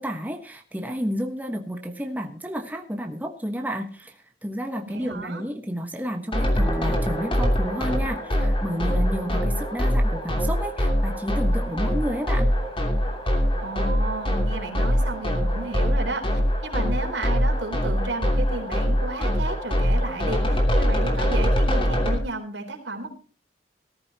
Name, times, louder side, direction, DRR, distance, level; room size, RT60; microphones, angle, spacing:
voice 1, 0.0-12.5, equal, 10° right, 3 dB, 1.3 m, -31 dB
voice 2, 4.9-5.4 13.6-23.1, right 2 dB, 80° right, 3 dB, 3.8 m, -33 dB
sound 1, 6.3-22.2, equal, 30° left, 3.0 m, -23 dB
sound 2, 6.6-14.9, right 1 dB, 10° left, 7.1 m, -42 dB
19.0 x 13.5 x 2.9 m, 0.37 s
head